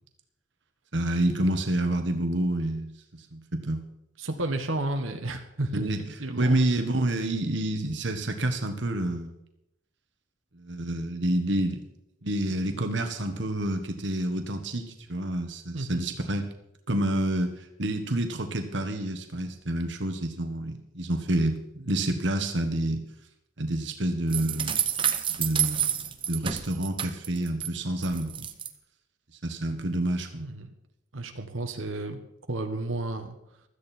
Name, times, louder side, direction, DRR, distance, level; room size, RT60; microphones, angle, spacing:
voice 1, 0.9-3.8 5.7-6.0 6.4-9.3 10.5-11.8 12.2-16.5 16.9-23.0 23.6-24.8 25.3-25.9 26.3-28.5 29.4-30.4, right 1 dB, 65° right, 6 dB, 1.5 m, -28 dB
voice 2, 4.2-5.8 6.2-6.6 15.7-16.0 30.4-30.7 31.1-32.2 32.5-33.4, right 2 dB, 85° right, 5 dB, 1.5 m, -32 dB
sound 1, 24.3-27.7 28.0-28.7, right 9 dB, 25° right, 0.9 m, -29 dB
16.0 x 13.0 x 4.4 m, 0.83 s
head